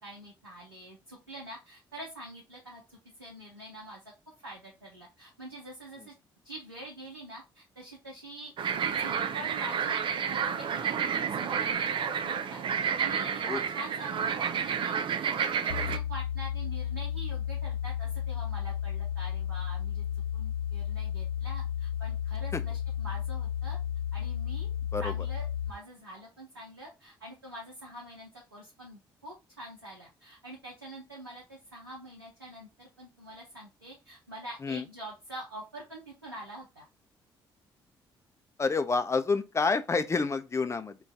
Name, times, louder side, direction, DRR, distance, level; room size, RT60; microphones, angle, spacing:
voice 1, 0.0-4.0 4.4-6.1 6.4-13.4 13.7-20.0 20.3-23.8 24.1-24.7 25.0-36.8, right 1 dB, 90° right, 0.6 m, -45 dB
sound 1, 8.6-16.0, right 7 dB, 45° right, 0.4 m, -30 dB
sound 2, 15.7-25.7, left 9 dB, 75° left, 0.5 m, -33 dB
voice 2, 38.6-41.0, left 4 dB, 25° left, 0.5 m, -28 dB
3.9 x 2.3 x 3.4 m
figure-of-eight pair, 45°, 12 cm